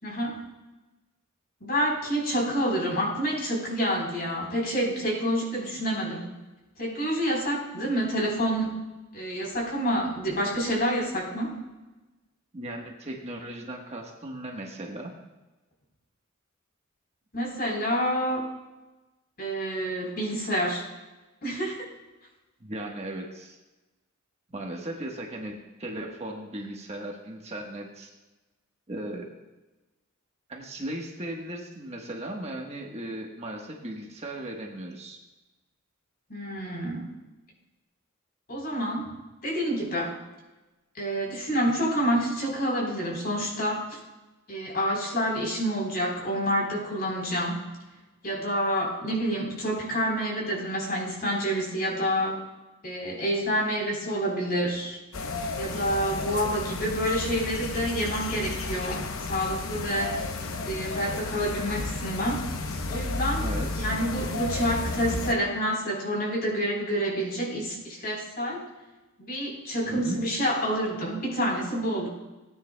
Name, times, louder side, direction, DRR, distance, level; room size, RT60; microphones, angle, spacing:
voice 1, 0.0-0.4 1.6-6.3 6.8-8.7 9.1-11.5 17.3-18.5 19.4-20.8 21.4-21.9 36.3-37.1 38.5-39.1 39.4-40.1 40.9-44.0 44.5-47.6 48.2-52.4 52.8-55.0 55.6-60.2 60.6-62.4 62.9-63.4 63.8-68.6 69.2-72.1, equal, 50° left, -1 dB, 3.9 m, -28 dB
voice 2, 12.5-15.1 22.6-23.6 24.5-28.1 28.9-29.3 30.5-35.2 63.4-63.9 69.8-70.2, right 1 dB, 30° right, 0 dB, 1.3 m, -37 dB
sound 1, 55.1-65.3, left 3 dB, 90° left, 0.9 m, -32 dB
18.0 x 9.6 x 2.3 m, 1.1 s
head